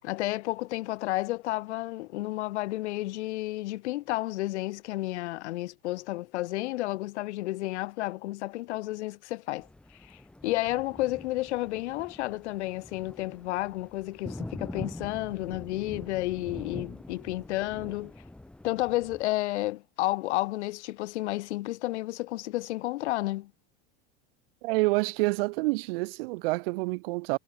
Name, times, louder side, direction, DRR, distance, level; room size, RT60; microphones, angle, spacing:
voice 1, 0.0-9.7 10.0-18.1 18.6-23.5, left 18 dB, 75° left, 6.1 m, -31 dB
Thunder, 9.6-19.2, left 1 dB, 5° left, 2.3 m, -44 dB
voice 2, 24.6-27.4, right 25 dB, 55° right, 2.9 m, -28 dB
supercardioid pair, 180°, 34 cm